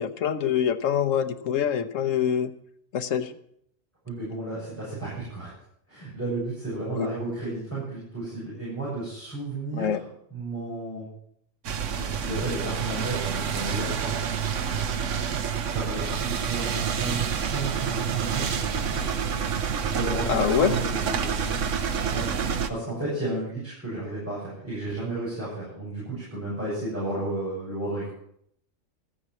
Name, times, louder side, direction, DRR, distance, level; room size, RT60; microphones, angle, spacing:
voice 1, 0.0-2.5 2.9-3.3 7.0-7.1 9.7-10.0 20.3-20.7, left 8 dB, 75° left, 11 dB, 1.3 m, -25 dB
voice 2, 4.0-5.5 5.9-10.0 10.3-11.1 11.9-14.2 15.7-19.0 19.8-21.6 22.1-28.1, right 2 dB, 10° right, -9 dB, 7.3 m, -33 dB
sound 1, 11.6-22.7, right 7 dB, 70° right, 1.2 m, -28 dB
14.0 x 8.7 x 7.2 m, 0.70 s
omnidirectional pair, 1.3 m